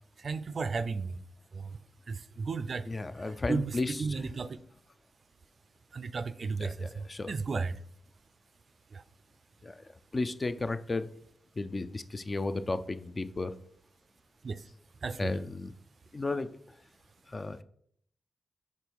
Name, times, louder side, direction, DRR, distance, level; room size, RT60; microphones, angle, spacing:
voice 1, 0.2-1.2 1.5-1.7 2.1-2.8 3.5-4.6 5.9-7.8 8.9-9.0 14.4-14.6 15.0-15.3, right 4 dB, 60° right, 0.4 m, -34 dB
voice 2, 2.9-4.2 6.6-7.3 9.6-9.8 10.1-11.1 11.6-13.6 15.2-15.7 16.1-16.5 17.3-17.6, left 3 dB, 35° left, 0.4 m, -34 dB
5.2 x 4.1 x 4.6 m
cardioid pair, 70°, 0 cm